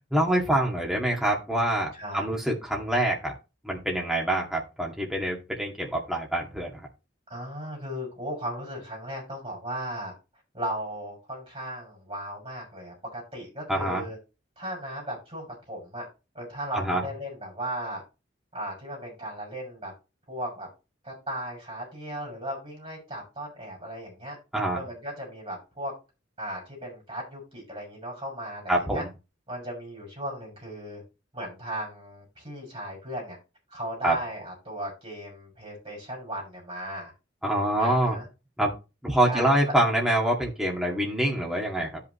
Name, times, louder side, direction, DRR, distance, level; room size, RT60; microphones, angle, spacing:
voice 1, 0.1-3.3 3.6-6.8 13.7-14.0 16.7-17.0 24.5-24.8 28.7-29.1 34.0-34.1 37.4-38.2 38.6-38.7 39.0-42.0, right 1 dB, 5° right, -2 dB, 2.1 m, -25 dB
voice 2, 1.9-2.3 7.3-10.1 10.5-14.2 14.6-16.0 16.3-18.0 18.5-19.9 20.3-20.7 21.0-24.4 24.7-25.9 26.4-29.0 29.5-31.0 31.3-33.4 33.7-37.1 37.8-38.3 39.3-39.7, right 1 dB, 25° right, -3 dB, 5.9 m, -36 dB
12.5 x 5.7 x 3.1 m, 0.28 s
head